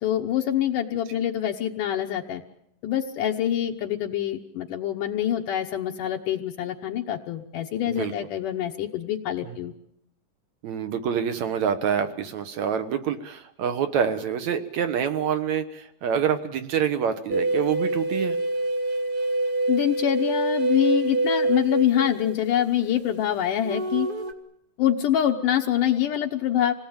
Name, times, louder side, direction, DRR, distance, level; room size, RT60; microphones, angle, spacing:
voice 1, 0.0-2.4 2.8-9.7 19.7-24.1 24.8-26.7, left 11 dB, 75° left, 1 dB, 2.6 m, -25 dB
voice 2, 10.6-18.4, right 8 dB, 65° right, 9 dB, 2.2 m, -26 dB
sound 1, 17.3-22.8 23.6-24.3, right 2 dB, 80° right, 0.4 m, -26 dB
26.5 x 18.5 x 8.8 m, 0.77 s
omnidirectional pair, 3.9 m